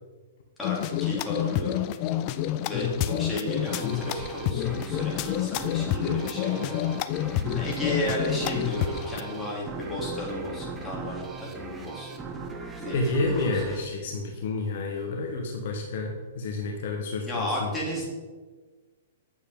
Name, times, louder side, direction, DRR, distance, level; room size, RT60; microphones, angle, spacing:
sound 1, 0.6-9.2, left 11 dB, 40° left, 0.4 m, -28 dB
voice 1, 0.6-1.8 2.7-6.8 7.5-12.1 12.8-13.6 17.3-18.1, left 1 dB, 10° left, -5 dB, 2.9 m, -33 dB
sound 2, 3.6-14.9, right 4 dB, 15° right, 1.0 m, -39 dB
voice 2, 12.9-17.7, left 3 dB, 60° left, 2 dB, 1.2 m, -29 dB
9.0 x 7.0 x 3.7 m, 1.4 s
figure-of-eight pair, 115°, 0 cm